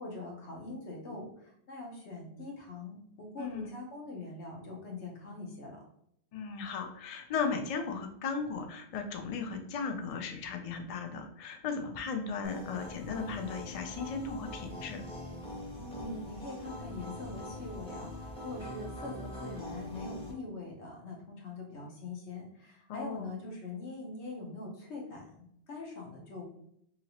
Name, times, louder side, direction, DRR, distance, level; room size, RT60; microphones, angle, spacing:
voice 1, 0.0-5.8 15.8-26.5, left 2 dB, 85° left, -1 dB, 1.2 m, -43 dB
voice 2, 3.4-3.7 6.3-15.1 22.9-23.3, left 5 dB, 55° left, 4 dB, 0.4 m, -36 dB
sound 1, 12.4-20.3, left 1 dB, 5° left, 0.6 m, -43 dB
2.8 x 2.8 x 2.8 m, 0.70 s
omnidirectional pair, 1.1 m